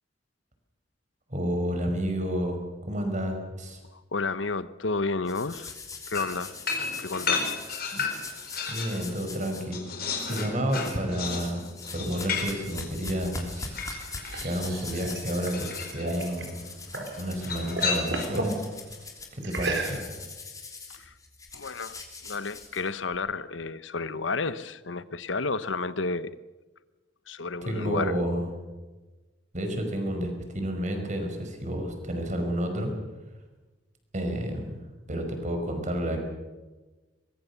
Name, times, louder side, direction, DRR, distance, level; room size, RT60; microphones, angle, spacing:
voice 1, 1.3-2.6 2.9-3.8 7.9-8.1 8.7-9.8 10.3-13.8 14.4-16.7 17.2-18.6 19.3-20.0 27.6-28.5 29.5-32.9 34.1-34.8 35.1-36.2, equal, 40° right, 4 dB, 5.2 m, -30 dB
voice 2, 3.9-5.7 6.1-6.5 7.0-7.5 20.9-21.1 21.5-22.0 22.2-26.3 27.3-28.2, left 4 dB, 85° left, 15 dB, 0.9 m, -31 dB
sound 1, 5.3-9.6 10.2-11.0 11.2-23.1, left 4 dB, 20° left, 3.3 m, -42 dB
sound 2, 6.1-9.0 9.4-14.5 15.5-16.1 17.4-18.5, left 5 dB, 55° left, 4.6 m, -33 dB
sound 3, 13.8-17.2 17.5-18.6 19.4-20.3, right 3 dB, 70° right, 4.6 m, -34 dB
23.5 x 21.5 x 7.0 m, 1.2 s
head